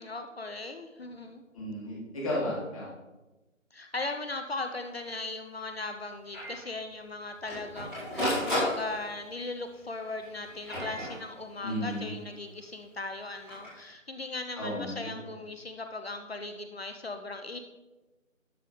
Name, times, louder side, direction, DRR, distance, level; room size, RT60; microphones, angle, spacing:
voice 1, 0.0-1.4 3.7-17.6, left 2 dB, 50° left, 6 dB, 0.8 m, -38 dB
voice 2, 1.5-2.9 11.6-12.1 14.6-15.1, equal, 25° left, -8 dB, 3.6 m, -33 dB
Printer, 4.7-4.8 5.1-5.2 5.6-5.7 6.3-6.6 7.2-9.3 10.1-11.6 13.3-13.7, left 1 dB, ahead, 2.1 m, -33 dB
12.0 x 6.8 x 3.9 m, 1.1 s
figure-of-eight pair, 160°, 40 cm